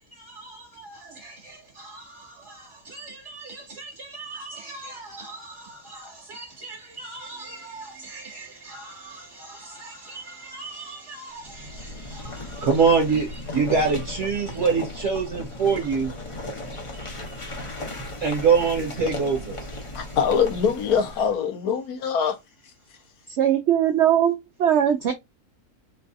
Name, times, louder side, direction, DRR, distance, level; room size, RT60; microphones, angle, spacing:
voice 1, 3.8-5.0 6.3-6.4 7.0-7.8 8.1-8.2 10.5-11.0 12.6-13.3 13.5-16.1 18.2-19.4, right 5 dB, 55° right, 1.1 m, -24 dB
sound 1, 11.4-21.4, left 2 dB, 35° left, 0.5 m, -36 dB
voice 2, 19.9-22.4, left 7 dB, 70° left, 1.2 m, -23 dB
voice 3, 23.3-25.1, right 10 dB, 75° right, 0.6 m, -20 dB
3.8 x 2.3 x 2.6 m
omnidirectional pair, 1.7 m